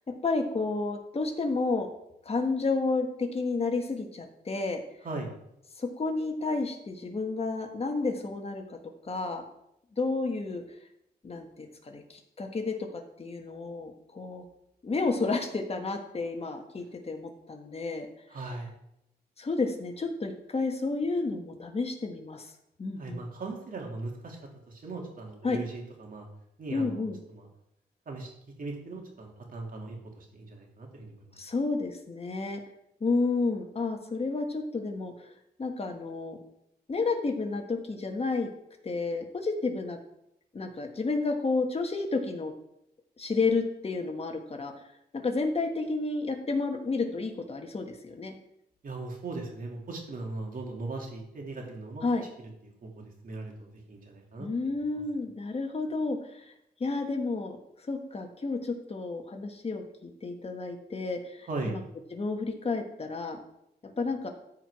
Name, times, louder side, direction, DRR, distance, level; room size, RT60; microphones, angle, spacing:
voice 1, 0.1-1.9 2.2-4.8 5.8-8.8 9.0-9.4 10.0-10.8 11.2-14.4 14.8-18.1 19.4-22.5 22.8-23.2 25.4-25.6 26.7-27.2 31.4-32.6 33.0-35.3 35.6-36.4 36.9-38.5 38.8-40.0 40.5-42.5 43.2-44.7 45.1-48.3 52.0-52.2 54.4-56.5 56.8-57.6 57.9-61.8 62.1-63.4 63.8-64.3, left 3 dB, 35° left, 4 dB, 1.5 m, -31 dB
voice 2, 18.3-18.7 23.0-24.4 24.7-26.3 26.6-27.4 28.1-28.3 28.6-31.4 48.8-52.0 52.8-55.0 61.5-61.8, right 3 dB, 55° right, 1 dB, 2.6 m, -39 dB
13.5 x 4.8 x 4.8 m, 0.81 s
cardioid pair, 95°, 17 cm